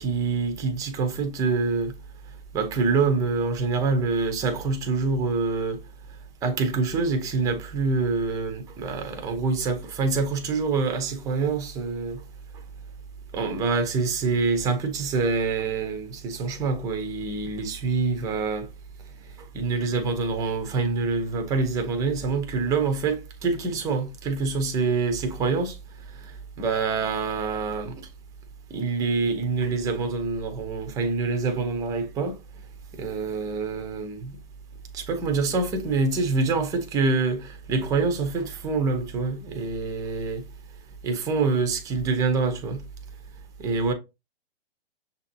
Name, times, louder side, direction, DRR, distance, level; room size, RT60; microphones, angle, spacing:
voice 1, 0.0-1.9 2.5-5.8 6.4-12.2 13.3-18.7 19.5-25.8 26.6-28.0 28.7-32.4 33.0-34.4 34.9-40.4 41.0-42.8 43.6-43.9, right 4 dB, 10° right, 0.6 m, -26 dB
6.9 x 2.7 x 2.6 m
hypercardioid pair, 145°, 31 cm